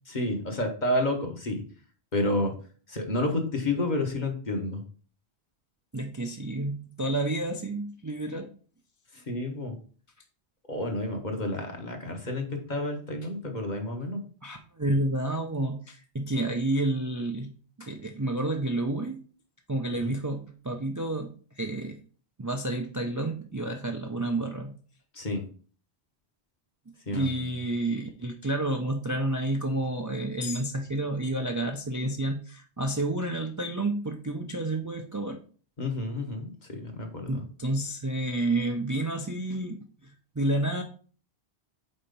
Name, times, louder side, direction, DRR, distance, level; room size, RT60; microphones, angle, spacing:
voice 1, 0.1-1.6 2.1-2.5 2.9-4.8 9.1-9.8 10.7-14.2 20.0-20.1 25.1-25.4 27.1-27.5 35.8-37.4, left 1 dB, 45° left, 3 dB, 1.3 m, -30 dB
voice 2, 5.9-8.5 14.4-17.5 17.8-19.2 19.7-21.3 21.6-22.0 22.4-24.7 27.1-35.4 37.3-39.8 40.4-40.8, right 2 dB, 25° right, 3 dB, 0.5 m, -30 dB
4.4 x 4.3 x 5.2 m, 0.41 s
omnidirectional pair, 1.1 m